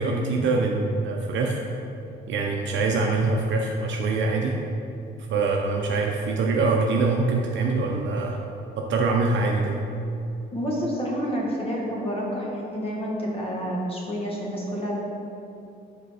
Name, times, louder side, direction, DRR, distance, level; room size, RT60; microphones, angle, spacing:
voice 1, 0.0-1.6 2.3-4.5 5.2-8.4 8.8-9.8, right 3 dB, 70° right, 0 dB, 0.6 m, -24 dB
voice 2, 10.5-15.0, equal, 30° left, -4 dB, 1.4 m, -29 dB
5.0 x 4.5 x 4.9 m, 2.7 s
cardioid pair, 90°, 20 cm